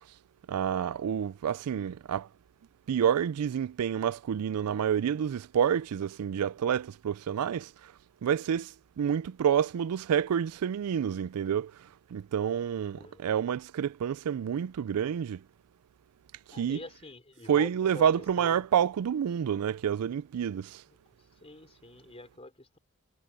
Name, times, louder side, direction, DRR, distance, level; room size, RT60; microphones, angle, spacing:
voice 1, 0.5-2.3 2.9-7.7 8.2-11.7 12.1-15.4 16.5-16.8 17.5-20.8, right 8 dB, 85° right, 0.4 m, -28 dB
voice 2, 12.7-13.2 16.5-18.6 21.4-22.8, left 2 dB, 25° left, 4.1 m, -45 dB
head